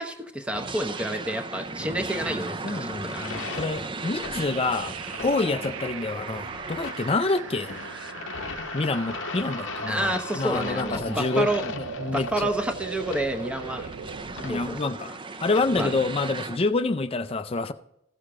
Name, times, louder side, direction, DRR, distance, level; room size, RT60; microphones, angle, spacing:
voice 1, 0.0-3.3 9.9-11.7 12.1-13.9 14.4-14.8 15.7-15.9, right 1 dB, 5° right, 0.8 m, -29 dB
sound 1, 0.5-9.6 10.1-10.2 11.7-16.6, right 3 dB, 25° right, 0.5 m, -38 dB
voice 2, 2.6-5.0 5.2-7.7 8.7-12.5 14.4-17.7, left 3 dB, 30° left, 0.4 m, -27 dB
sound 2, 3.0-15.6, left 5 dB, 65° left, 0.7 m, -39 dB
sound 3, 4.3-14.8, right 7 dB, 85° right, 0.4 m, -39 dB
15.5 x 6.5 x 3.7 m
head